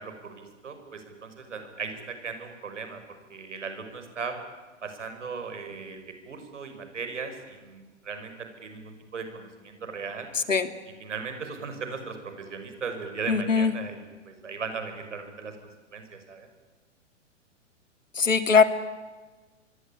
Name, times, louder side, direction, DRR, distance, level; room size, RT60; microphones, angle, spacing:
voice 1, 0.0-4.4 4.8-10.3 11.0-15.6 15.9-16.5, right 5 dB, 70° right, 7 dB, 6.0 m, -37 dB
voice 2, 10.3-10.7 13.3-13.7 18.1-18.6, left 5 dB, 80° left, 10 dB, 2.4 m, -21 dB
26.5 x 22.5 x 9.8 m, 1.3 s
figure-of-eight pair, 110°, 38 cm